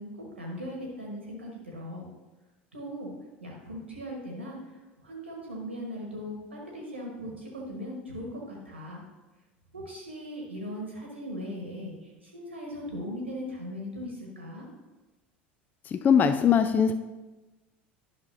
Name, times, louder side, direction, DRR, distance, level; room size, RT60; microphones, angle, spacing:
voice 1, 0.0-2.1 2.7-3.1 3.4-9.0 9.7-14.7, equal, 90° right, -2 dB, 1.2 m, -39 dB
voice 2, 15.9-16.9, left 7 dB, 30° left, 10 dB, 0.3 m, -21 dB
11.0 x 5.8 x 2.6 m, 1.1 s
figure-of-eight pair, 75°, 6 cm